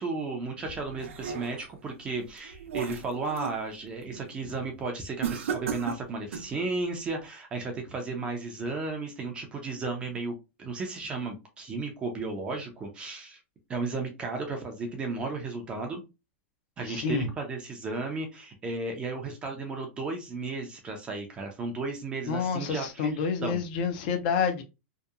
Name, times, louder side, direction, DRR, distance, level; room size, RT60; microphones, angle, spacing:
voice 1, 0.0-13.4 13.7-16.0 16.8-23.6, right 3 dB, 15° right, 3 dB, 0.4 m, -34 dB
sound 1, 0.7-1.8 2.3-3.6 4.0-4.3 5.2-6.6, right 7 dB, 80° right, 0.5 m, -35 dB
voice 2, 16.9-17.3 22.3-24.6, left 6 dB, 40° left, 6 dB, 0.5 m, -28 dB
2.7 x 2.2 x 2.3 m, 0.26 s
supercardioid pair, 165°, 7 cm